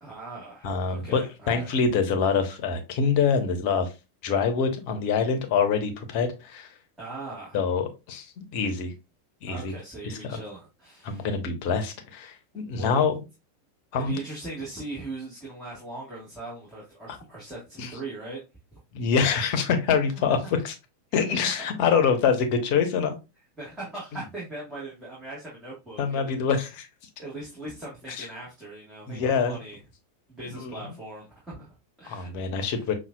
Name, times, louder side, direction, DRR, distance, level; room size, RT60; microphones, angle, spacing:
voice 1, 0.0-1.7 7.0-7.6 9.5-11.3 12.7-13.0 14.0-18.4 23.6-26.4 27.2-29.8 30.3-32.9, right 2 dB, 10° right, 1.5 m, -40 dB
voice 2, 0.6-1.2 1.5-3.9 4.2-6.7 7.5-8.9 9.4-9.7 10.0-10.4 11.0-13.1 13.9-14.2 17.8-17.9 18.9-20.7 21.1-23.2 26.0-26.9 28.1-28.2 29.1-29.6 30.6-30.7 32.0-32.9, left 6 dB, 45° left, 0.8 m, -25 dB
5.6 x 2.4 x 2.3 m
figure-of-eight pair, 90°, 0 cm